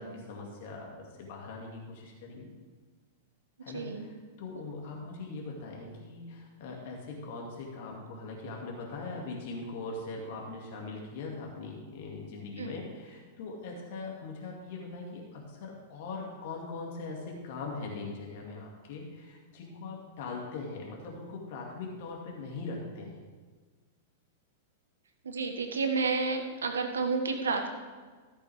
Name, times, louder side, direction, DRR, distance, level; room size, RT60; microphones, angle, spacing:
voice 1, 0.0-2.5 3.6-23.2, left 3 dB, 60° left, -1 dB, 2.4 m, -41 dB
voice 2, 3.7-4.1 12.6-12.8 25.2-27.7, right 4 dB, 80° right, 6 dB, 1.4 m, -30 dB
14.0 x 8.2 x 3.6 m, 1.4 s
hypercardioid pair, 105°, 0 cm